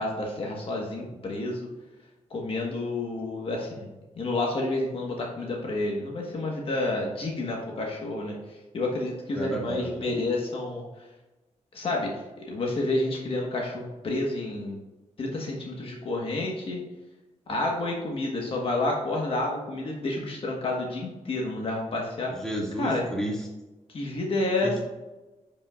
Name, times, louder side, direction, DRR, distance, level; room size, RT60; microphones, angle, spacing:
voice 1, 0.0-1.7 2.3-3.9 4.1-11.1 11.7-14.8 15.2-16.8 17.5-22.3 22.8-23.0 23.9-24.8, left 2 dB, 50° left, -1 dB, 1.3 m, -30 dB
voice 2, 9.4-10.1 22.4-23.4 24.6-24.8, right 1 dB, 5° left, -4 dB, 2.1 m, -31 dB
10.5 x 5.4 x 2.4 m, 1.1 s
wide cardioid pair, 135°, 12 cm